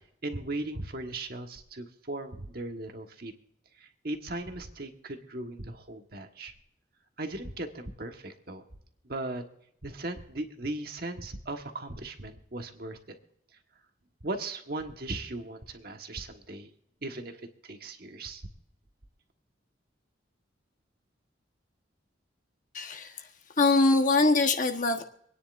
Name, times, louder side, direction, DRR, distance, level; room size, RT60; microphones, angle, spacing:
voice 1, 0.2-3.3 3.8-6.5 7.2-8.6 9.0-9.4 9.8-13.0 14.2-16.7 17.0-18.4, right 2 dB, 50° right, 5 dB, 1.4 m, -38 dB
voice 2, 22.7-23.1 23.6-25.0, left 3 dB, 45° left, 5 dB, 1.2 m, -23 dB
26.5 x 10.0 x 2.6 m, 0.72 s
head